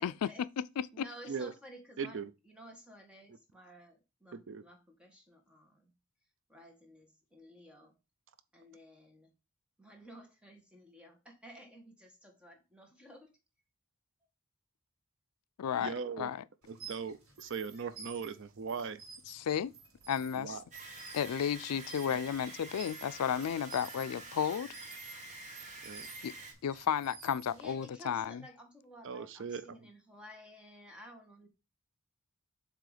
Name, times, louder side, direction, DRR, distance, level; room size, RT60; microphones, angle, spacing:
voice 1, 0.0-0.5 0.9-5.9 6.5-8.0 8.5-9.3 9.8-13.4 27.5-31.5, equal, 5° right, 1.4 m, -54 dB
voice 2, 2.0-2.3 4.3-4.6 15.8-16.3 16.7-19.0 20.3-20.6 22.1-22.2 25.8-26.1 29.0-29.6, right 5 dB, 55° right, 0.5 m, -39 dB
voice 3, 15.6-16.4 19.3-19.7 20.1-20.6 21.1-24.7 26.2-26.3 26.6-28.4, left 8 dB, 85° left, 0.4 m, -33 dB
sound 1, 16.6-27.9, right 5 dB, 85° right, 2.2 m, -52 dB
sound 2, 20.7-26.5, right 2 dB, 30° right, 1.2 m, -48 dB
7.5 x 3.0 x 4.9 m
head